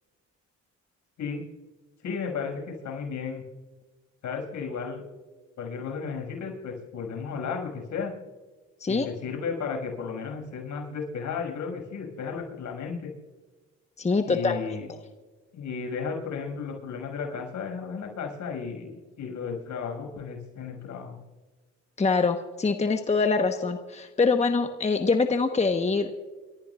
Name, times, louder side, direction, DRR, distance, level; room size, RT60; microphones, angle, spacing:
voice 1, 2.0-3.4 4.2-5.0 5.6-8.1 8.9-13.1 14.3-14.9 15.5-21.2, left 5 dB, 75° left, 0 dB, 6.2 m, -34 dB
voice 2, 14.0-14.6 22.0-26.2, left 4 dB, 20° left, 5 dB, 1.1 m, -24 dB
30.0 x 14.5 x 2.4 m, 1.3 s
cardioid pair, 90°, 30 cm